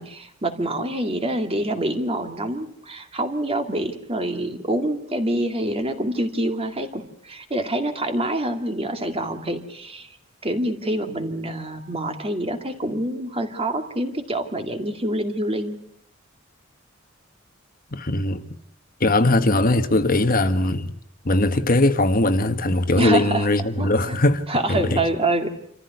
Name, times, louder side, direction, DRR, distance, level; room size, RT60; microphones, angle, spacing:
voice 1, 0.0-10.1 10.4-15.8 23.0-23.5 23.8-24.2 24.5-25.5, right 1 dB, 30° right, 2.3 m, -26 dB
voice 2, 17.9-18.4 19.0-20.9 21.2-25.0, left 2 dB, 45° left, 1.3 m, -20 dB
27.0 x 15.0 x 9.4 m
head